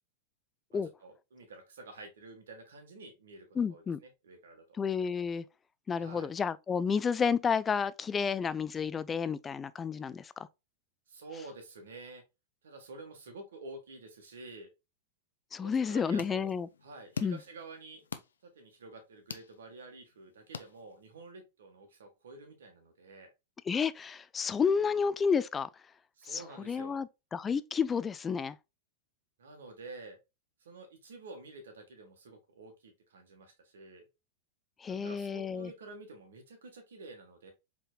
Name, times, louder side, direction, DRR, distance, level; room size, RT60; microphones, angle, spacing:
voice 1, 1.0-4.8 6.0-6.3 11.1-12.2 12.6-14.7 15.6-16.5 16.8-18.0 18.4-23.3 26.2-27.0 29.4-30.2 30.6-34.0 34.9-37.5, right 2 dB, 80° right, 1.4 m, -49 dB
voice 2, 3.6-4.0 4.8-5.4 5.9-10.5 15.5-16.7 17.2-17.4 23.7-25.7 26.2-28.6 34.8-35.7, left 6 dB, 20° left, 0.3 m, -31 dB
sound 1, 15.7-21.3, left 6 dB, 85° left, 0.5 m, -46 dB
4.4 x 3.4 x 2.4 m
hypercardioid pair, 105°, 0 cm